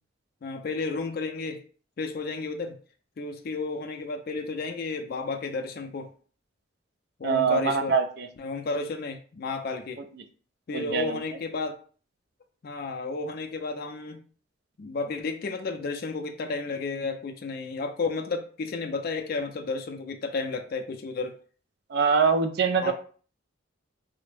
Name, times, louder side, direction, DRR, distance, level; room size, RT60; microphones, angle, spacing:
voice 1, 0.4-1.6 2.0-2.8 3.2-6.1 7.2-8.0 8.4-10.0 10.7-11.8 12.6-14.2 14.8-21.4 22.8-22.9, left 3 dB, 50° left, 4 dB, 0.4 m, -32 dB
voice 2, 7.2-8.3 10.7-11.2 21.9-22.9, right 5 dB, 55° right, 7 dB, 0.4 m, -24 dB
3.3 x 2.0 x 3.2 m, 0.42 s
head